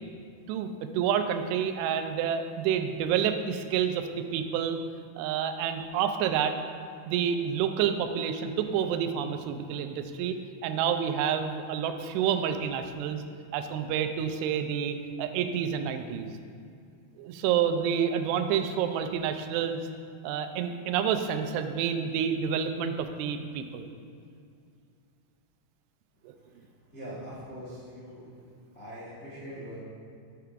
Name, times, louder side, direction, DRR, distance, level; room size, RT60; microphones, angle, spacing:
voice 1, 0.5-4.8 5.2-6.6 7.1-13.2 13.5-16.3 17.2-19.8 20.2-23.9 26.2-26.3, right 8 dB, 85° right, 7 dB, 2.6 m, -29 dB
voice 2, 26.9-28.3 28.7-29.8, equal, 60° left, -10 dB, 0.7 m, -42 dB
9.2 x 3.6 x 5.7 m, 2.3 s
omnidirectional pair, 4.8 m